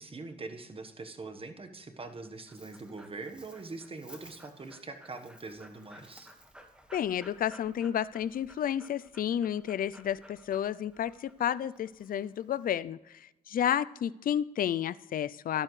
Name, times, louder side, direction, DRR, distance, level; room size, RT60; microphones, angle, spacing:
voice 1, 0.0-6.3, right 3 dB, 35° right, 7 dB, 1.2 m, -43 dB
Dog, 2.0-12.8, equal, 5° right, 1.5 m, -56 dB
voice 2, 6.9-15.6, left 10 dB, 60° left, 17 dB, 0.4 m, -31 dB
12.0 x 12.0 x 3.2 m, 0.93 s
cardioid pair, 100°, 16 cm